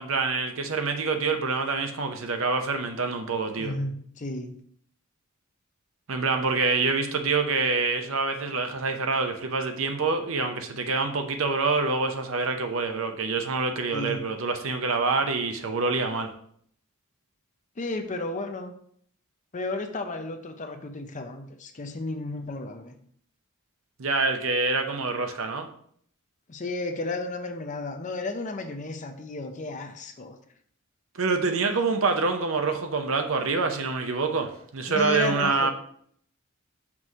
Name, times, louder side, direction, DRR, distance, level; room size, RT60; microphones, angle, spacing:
voice 1, 0.0-3.7 6.1-16.3 24.0-25.7 31.2-35.7, right 4 dB, 65° right, 6 dB, 0.8 m, -26 dB
voice 2, 3.6-4.5 13.9-14.3 17.8-18.7 19.5-23.0 26.5-30.4 34.9-35.7, left 2 dB, 35° left, 6 dB, 0.6 m, -33 dB
6.0 x 3.2 x 5.4 m, 0.62 s
head